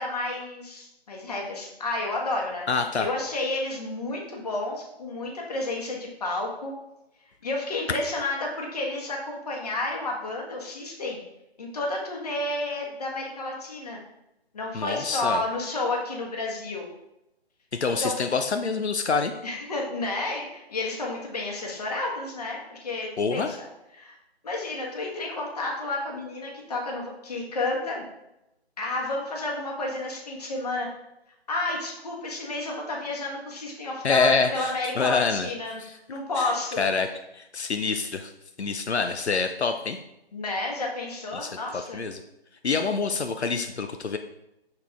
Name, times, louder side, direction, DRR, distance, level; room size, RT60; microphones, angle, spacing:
voice 1, 0.0-2.7 3.0-6.7 7.4-11.2 11.6-14.0 14.5-16.9 18.0-18.2 19.4-23.7 23.9-24.2 24.4-28.0 28.8-30.9 31.5-35.8 36.1-36.8 40.3-42.0, left 2 dB, 35° left, -1 dB, 1.4 m, -31 dB
voice 2, 2.7-3.1 14.7-15.4 17.7-19.3 23.2-23.5 34.0-35.5 35.8-36.0 36.4-37.1 37.3-38.3 38.6-40.0 41.3-42.2 42.6-44.2, left 4 dB, 90° left, 7 dB, 0.6 m, -26 dB
6.7 x 4.0 x 3.5 m, 0.87 s
figure-of-eight pair, 155°, 32 cm